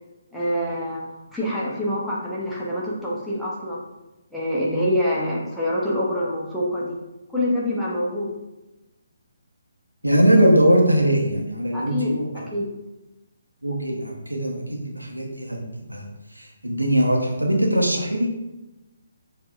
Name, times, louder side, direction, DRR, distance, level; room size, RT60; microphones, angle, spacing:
voice 1, 0.3-1.0 1.3-3.9 4.3-7.0 7.3-8.3 11.7-12.1 12.5-12.7, left 1 dB, ahead, -8 dB, 0.8 m, -25 dB
voice 2, 10.0-12.5 13.6-15.6 15.9-16.1 16.3-18.3, right 1 dB, 85° right, 0 dB, 0.9 m, -21 dB
7.0 x 2.7 x 2.4 m, 1.0 s
figure-of-eight pair, 140°, 0 cm